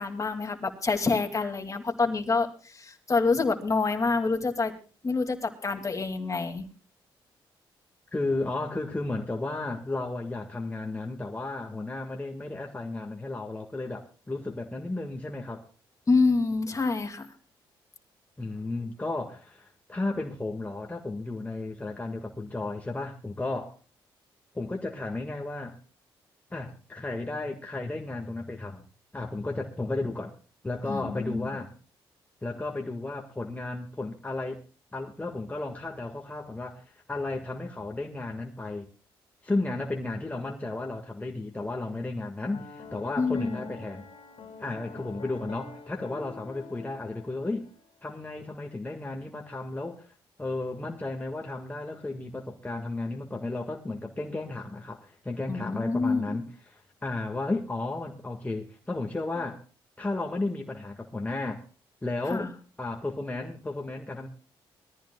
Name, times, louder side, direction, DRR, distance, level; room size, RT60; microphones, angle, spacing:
voice 1, 0.0-4.7 5.0-6.7 16.1-17.3 30.9-31.6 43.2-43.7 55.5-56.4 62.3-62.5, left 4 dB, 35° left, 5 dB, 2.3 m, -27 dB
voice 2, 8.1-15.7 18.4-23.7 24.5-25.8 26.5-28.8 29.1-30.3 30.6-31.7 32.4-34.6 34.9-38.9 39.4-44.1 44.6-47.7 48.0-50.1 50.4-59.6 60.0-61.6 62.0-62.5 62.8-64.3, left 2 dB, 15° left, 1 dB, 1.7 m, -33 dB
Piano, 42.5-47.8, left 5 dB, 65° left, 2.5 m, -46 dB
21.0 x 14.0 x 2.3 m, 0.36 s
supercardioid pair, 65°, 10 cm